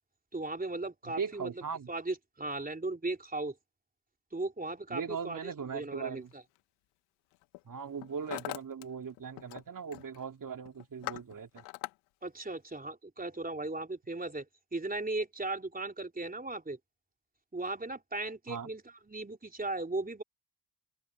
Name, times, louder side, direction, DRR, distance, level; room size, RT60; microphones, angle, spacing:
voice 1, 0.3-1.5 1.9-3.5 4.3-6.4 12.2-14.5 14.7-16.8 17.5-18.8 19.1-20.2, right 2 dB, 15° right, 3.6 m, -37 dB
voice 2, 1.1-1.9 4.9-6.3 7.6-11.6 18.5-18.7, right 6 dB, 40° right, 2.8 m, -39 dB
Hammer, 6.3-6.6 7.3-7.6 7.9-8.9 9.1-9.6 9.9-10.2 10.7-11.9, left 22 dB, 80° left, 2.0 m, -41 dB
open air
hypercardioid pair, 45°, 49 cm